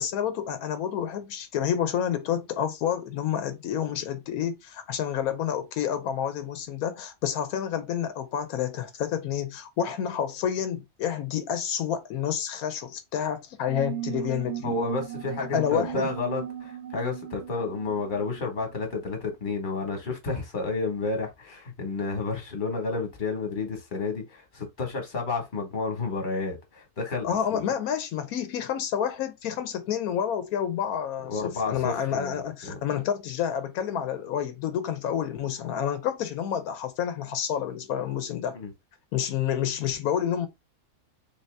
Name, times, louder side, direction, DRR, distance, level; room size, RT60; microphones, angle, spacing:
voice 1, 0.0-14.8 15.5-16.1 27.2-38.6 39.1-40.5, left 9 dB, 85° left, 1.1 m, -29 dB
sound 1, 13.7-18.9, right 12 dB, 65° right, 0.8 m, -37 dB
voice 2, 14.6-27.6 31.3-32.8 38.5-38.7, left 3 dB, 35° left, 1.3 m, -31 dB
3.6 x 2.7 x 3.2 m
omnidirectional pair, 1.5 m